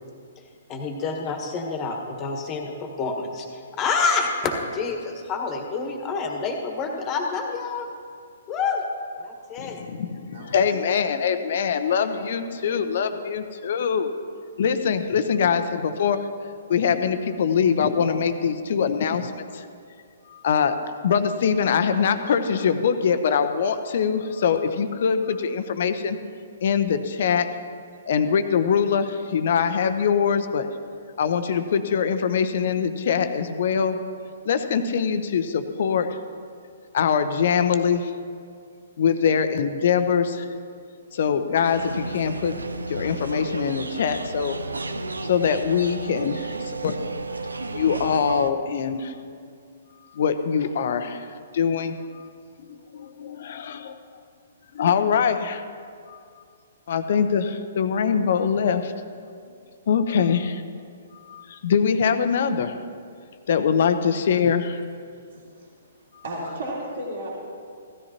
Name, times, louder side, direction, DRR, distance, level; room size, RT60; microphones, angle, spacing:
voice 1, 0.7-7.9 8.5-8.8 9.2-9.8, left 4 dB, 25° left, 3 dB, 1.5 m, -28 dB
voice 2, 9.6-14.1 14.6-16.3 16.7-19.7 20.3-20.8 21.0-26.2 26.6-27.5 28.1-30.7 31.2-34.0 34.4-36.2 36.9-38.2 39.0-40.5 41.1-42.6 42.9-44.6 45.2-47.0 47.7-49.1 50.1-52.3 52.6-54.2 54.7-55.6 56.1-56.2 56.9-58.9 59.9-60.6 61.1-62.8 63.5-64.8 66.1-66.2, left 7 dB, 55° left, 9 dB, 0.8 m, -23 dB
voice 3, 10.3-10.7 65.3-65.9 66.2-67.3, right 1 dB, 60° right, -5 dB, 2.7 m, -34 dB
sound 1, 41.6-48.5, right 2 dB, 80° right, 0.6 m, -33 dB
16.0 x 13.0 x 3.0 m, 2.3 s
figure-of-eight pair, 125°, 0 cm